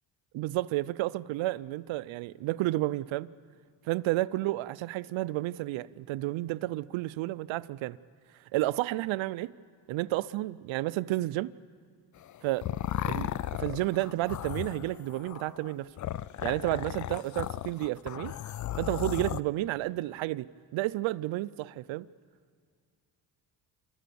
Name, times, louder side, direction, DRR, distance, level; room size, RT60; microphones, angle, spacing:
voice 1, 0.3-3.3 3.9-8.0 8.5-9.5 9.9-11.5 12.4-12.7 13.1-13.3 13.6-15.9 16.4-18.4 18.8-22.1, right 17 dB, 80° right, 0.6 m, -31 dB
sound 1, 12.2-19.4, left 12 dB, 40° left, 0.5 m, -35 dB
29.5 x 13.5 x 7.0 m
cardioid pair, 100°, 46 cm